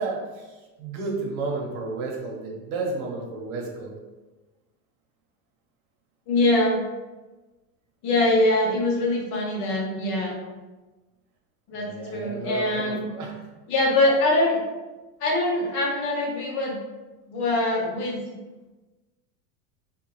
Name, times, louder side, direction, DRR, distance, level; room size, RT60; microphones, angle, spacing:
voice 1, 0.0-3.9 11.7-13.4, right 3 dB, 90° right, 0 dB, 1.1 m, -32 dB
voice 2, 6.3-6.8 8.0-10.4 11.7-13.1 13.7-14.6 15.2-16.8 17.3-18.2, left 2 dB, 35° left, -1 dB, 0.7 m, -23 dB
3.5 x 2.4 x 3.1 m, 1.2 s
supercardioid pair, 165°, 42 cm